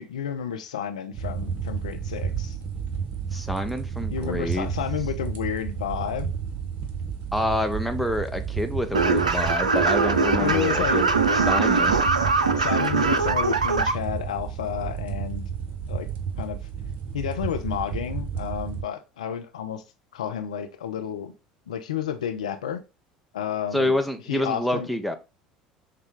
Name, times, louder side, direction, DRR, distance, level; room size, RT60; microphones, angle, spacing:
voice 1, 0.0-2.6 4.1-6.3 10.4-11.0 12.5-15.4 15.9-16.1 16.4-16.6 17.1-19.8 20.1-21.3 21.7-22.8 23.3-23.9 24.3-24.9, left 9 dB, 75° left, 0.5 m, -31 dB
sound 1, 1.1-18.8, right 7 dB, 45° right, 1.1 m, -32 dB
voice 2, 3.3-4.7 7.3-11.1 11.3-12.0 23.7-25.2, left 1 dB, ahead, 0.7 m, -27 dB
sound 2, 8.9-13.9, right 4 dB, 85° right, 0.4 m, -22 dB
6.5 x 2.2 x 3.7 m
figure-of-eight pair, 65°, 4 cm